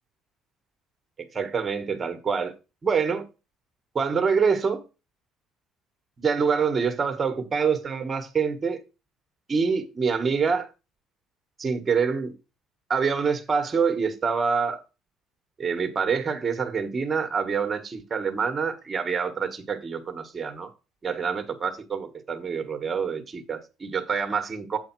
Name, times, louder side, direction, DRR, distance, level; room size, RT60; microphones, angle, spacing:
voice 1, 1.3-2.5 2.8-3.2 3.9-4.8 6.2-8.8 9.5-10.7 11.6-12.3 12.9-14.8 15.6-20.7 21.0-24.8, right 5 dB, 25° right, 1.3 m, -26 dB
8.1 x 4.9 x 4.5 m
cardioid pair, 120°, 0 cm